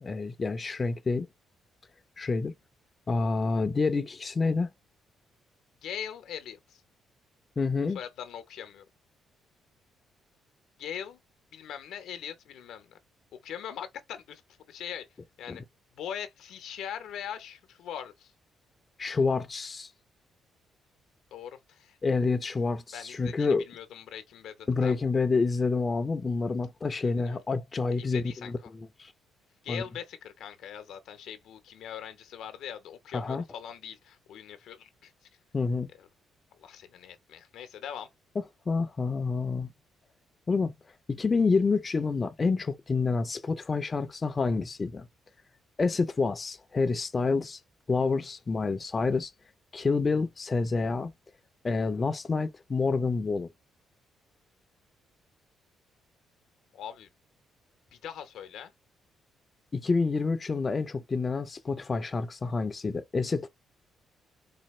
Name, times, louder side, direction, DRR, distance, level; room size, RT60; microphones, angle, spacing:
voice 1, 0.0-1.3 2.2-2.5 3.1-4.7 7.6-8.0 15.5-15.6 19.0-19.9 22.0-23.6 24.7-29.1 29.7-29.8 33.1-33.4 35.5-35.9 38.7-39.7 40.5-40.7 41.1-45.1 45.8-47.6 47.9-49.3 49.7-51.1 51.6-53.5 59.7-63.5, left 4 dB, 30° left, 0.5 m, -28 dB
voice 2, 5.8-6.8 7.9-8.8 10.8-11.2 11.5-12.9 13.4-14.4 14.7-15.1 15.4-15.6 15.9-18.3 21.3-22.0 22.9-25.0 27.0-27.4 27.9-28.7 29.6-35.1 36.0-36.1 36.6-38.1 56.7-57.1 57.9-58.7, left 9 dB, 80° left, 0.8 m, -41 dB
4.1 x 2.3 x 3.1 m
cardioid pair, 90°, 0 cm